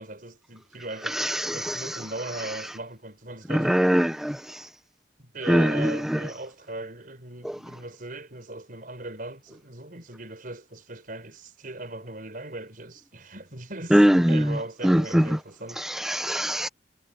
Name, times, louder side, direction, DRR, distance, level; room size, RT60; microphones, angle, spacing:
voice 1, 0.0-1.2 1.5-3.8 5.2-15.8, right 2 dB, 50° right, 5.9 m, -38 dB
voice 2, 1.1-2.0 3.5-4.7 5.5-6.2 13.9-14.6 14.8-15.3 15.8-16.7, equal, 5° right, 0.5 m, -22 dB
head